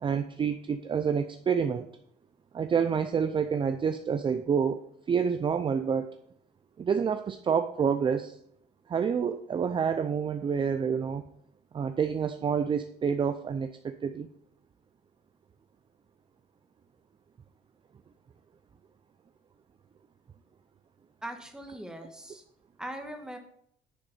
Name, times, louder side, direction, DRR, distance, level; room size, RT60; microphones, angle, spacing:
voice 1, 0.0-1.9 2.5-4.8 5.1-6.2 6.8-8.4 8.9-11.2 11.7-14.3, right 6 dB, 30° right, 9 dB, 0.5 m, -28 dB
voice 2, 21.2-22.4 22.8-23.4, right 1 dB, 5° right, 4 dB, 1.4 m, -40 dB
9.9 x 3.8 x 6.7 m, 0.69 s
cardioid pair, 110°, 17 cm